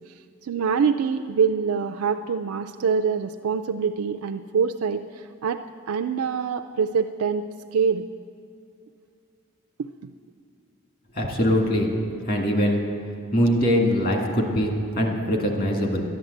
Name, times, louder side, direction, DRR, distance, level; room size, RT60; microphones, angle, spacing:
voice 1, 0.4-5.6 5.9-7.4 7.7-8.1, right 6 dB, 85° right, 6 dB, 0.4 m, -24 dB
voice 2, 11.1-12.8 13.3-16.0, equal, 45° left, 1 dB, 1.9 m, -22 dB
11.5 x 11.0 x 7.9 m, 2.4 s
head